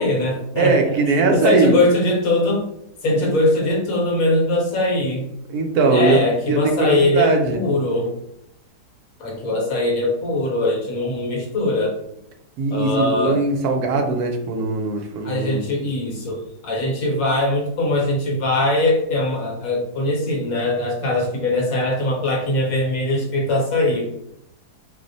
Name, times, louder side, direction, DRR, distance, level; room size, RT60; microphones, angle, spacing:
voice 1, 0.0-0.8 1.3-2.7 3.0-5.3 5.9-8.1 9.2-12.0 12.7-13.4 15.2-24.1, left 2 dB, 65° left, 0 dB, 1.1 m, -21 dB
voice 2, 0.6-1.8 3.1-3.3 5.5-6.2 6.5-7.6 12.6-15.7, right 3 dB, 75° right, 4 dB, 1.0 m, -20 dB
2.7 x 2.0 x 3.8 m, 0.77 s
omnidirectional pair, 1.7 m